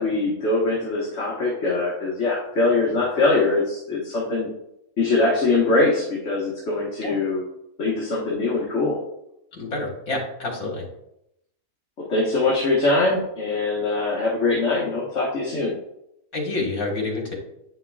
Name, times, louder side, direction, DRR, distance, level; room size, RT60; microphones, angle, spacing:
voice 1, 0.0-4.5 5.0-7.4 7.8-9.0 12.1-15.7, left 3 dB, 50° left, -5 dB, 1.5 m, -22 dB
voice 2, 9.5-10.8 16.3-17.4, left 2 dB, 75° left, 0 dB, 2.0 m, -28 dB
8.5 x 5.8 x 2.3 m, 0.81 s
omnidirectional pair, 1.5 m